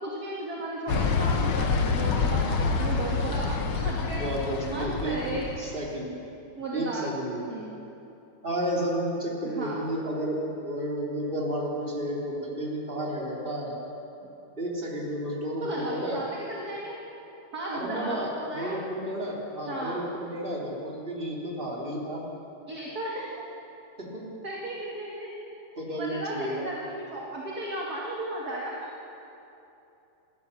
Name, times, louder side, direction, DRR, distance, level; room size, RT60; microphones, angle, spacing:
voice 1, 0.0-4.2 4.6-5.5 6.6-7.0 7.5-7.8 9.4-9.9 14.2-14.3 15.6-17.0 17.5-18.8 19.7-20.0 22.7-23.3 24.4-25.6 26.0-28.9, right 2 dB, 35° right, -4 dB, 2.3 m, -35 dB
sound 1, 0.9-5.7, left 5 dB, 55° left, 1.6 m, -27 dB
voice 2, 4.1-6.1 6.7-7.4 8.4-13.8 14.6-16.2 17.7-22.2 24.0-24.2 25.8-26.6, right 1 dB, 15° right, -3 dB, 3.4 m, -32 dB
28.5 x 14.0 x 7.0 m, 2.9 s
omnidirectional pair, 3.5 m